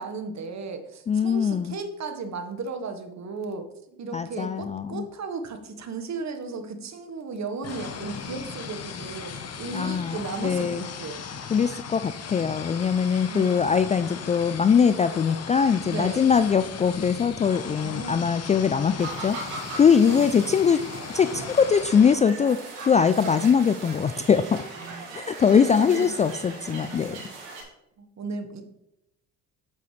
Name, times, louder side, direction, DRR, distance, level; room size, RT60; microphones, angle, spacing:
voice 1, 0.0-11.2 13.3-13.6 15.8-16.3 17.7-18.3 20.0-20.3 23.2-23.4 24.8-25.0 25.8-26.1 26.7-27.3 28.0-28.6, right 4 dB, 45° right, 7 dB, 1.4 m, -35 dB
voice 2, 1.1-1.7 4.1-5.1 9.7-10.8 11.5-20.9 21.1-24.6 25.1-27.2, left 6 dB, 20° left, 12 dB, 0.3 m, -22 dB
sound 1, 7.6-22.1, left 6 dB, 40° left, 1.1 m, -37 dB
sound 2, 19.0-27.6, right 3 dB, 80° right, 2.8 m, -39 dB
8.3 x 7.9 x 3.3 m, 0.85 s
hypercardioid pair, 60°, 39 cm